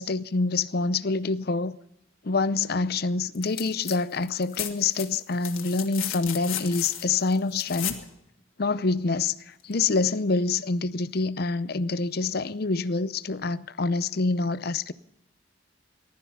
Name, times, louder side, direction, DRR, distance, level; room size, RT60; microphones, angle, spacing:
voice 1, 0.0-1.8 2.2-8.0 8.6-14.9, left 3 dB, 50° left, 0.6 m, -26 dB
sound 1, 3.4-4.0 4.2-8.1 9.7-9.8, left 11 dB, 90° left, 1.8 m, -34 dB
19.0 x 12.5 x 5.6 m
head